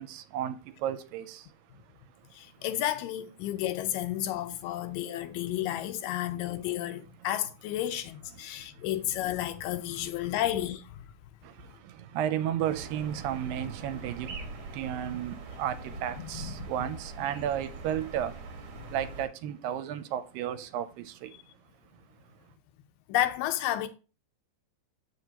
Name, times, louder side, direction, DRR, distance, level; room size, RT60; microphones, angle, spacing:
voice 1, 0.0-2.5 4.3-4.4 7.0-7.1 8.3-8.8 10.0-10.1 11.4-21.4 21.9-22.0 22.3-22.5, right 10 dB, 85° right, 2.3 m, -34 dB
voice 2, 2.3-11.1 16.3-16.5 18.8-18.9 23.1-23.9, left 13 dB, 80° left, 2.1 m, -31 dB
sound 1, 12.6-19.3, right 3 dB, 60° right, 2.0 m, -43 dB
7.7 x 6.8 x 2.9 m
omnidirectional pair, 4.1 m